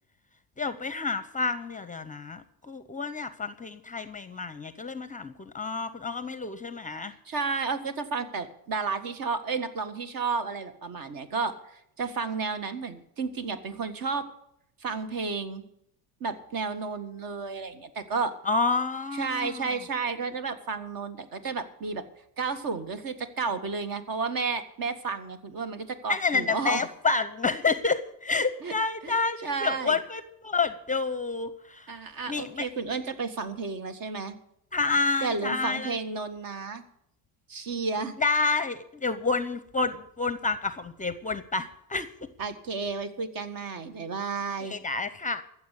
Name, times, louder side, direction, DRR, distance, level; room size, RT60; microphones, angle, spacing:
voice 1, 0.6-7.1 18.5-19.7 26.1-31.9 32.3-32.6 34.7-35.9 38.2-42.1 44.7-45.4, left 4 dB, 20° left, 13 dB, 0.6 m, -29 dB
voice 2, 7.3-14.3 14.8-15.6 16.2-18.4 19.1-22.0 22.4-26.8 28.6-28.7 29.0-30.0 31.9-34.4 35.2-36.8 37.5-38.1 42.4-44.8, right 4 dB, 50° right, 10 dB, 1.7 m, -32 dB
15.0 x 7.2 x 8.3 m, 0.75 s
cardioid pair, 115°, 44 cm